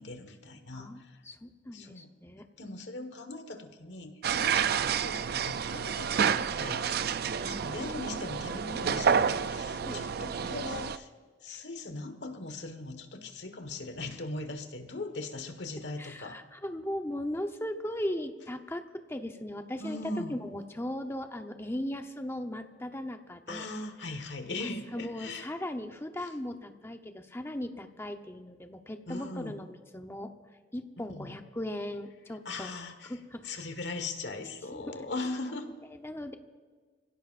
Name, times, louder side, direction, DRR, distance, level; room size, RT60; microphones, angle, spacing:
voice 1, 0.0-1.2 1.7-2.1 2.6-7.0 7.4-11.1 11.4-16.4 19.8-20.4 23.5-25.5 29.1-29.6 31.1-31.3 32.4-33.1 33.4-35.7, left 2 dB, 70° left, 7 dB, 1.5 m, -39 dB
voice 2, 0.7-2.5 4.4-4.5 6.6-6.7 7.1-7.2 9.8-10.0 11.5-11.6 16.0-23.7 24.0-24.2 24.6-30.3 30.7-32.7 33.0-33.5 34.7-35.1 35.9-36.4, left 1 dB, 15° left, 6 dB, 0.9 m, -38 dB
sound 1, 4.2-11.0, right 7 dB, 60° right, 0.4 m, -29 dB
25.5 x 16.5 x 2.6 m, 1.6 s
head